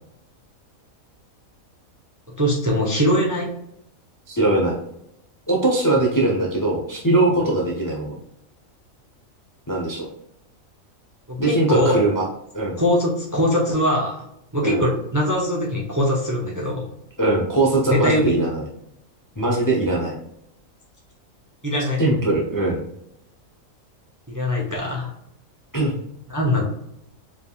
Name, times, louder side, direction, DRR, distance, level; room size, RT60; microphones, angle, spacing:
voice 1, 2.4-3.5 11.3-12.0 12.8-14.2 14.5-16.9 17.9-18.3 21.6-22.0 24.3-25.1 26.3-26.6, left 1 dB, 15° right, -3 dB, 0.7 m, -21 dB
voice 2, 4.3-4.7 5.5-8.1 9.7-10.1 11.4-12.3 12.5-12.8 14.6-14.8 17.2-18.6 19.4-20.1 22.0-22.8 25.7-25.9, right 2 dB, 20° left, -3 dB, 0.6 m, -21 dB
4.9 x 3.5 x 2.4 m, 0.78 s
omnidirectional pair, 1.4 m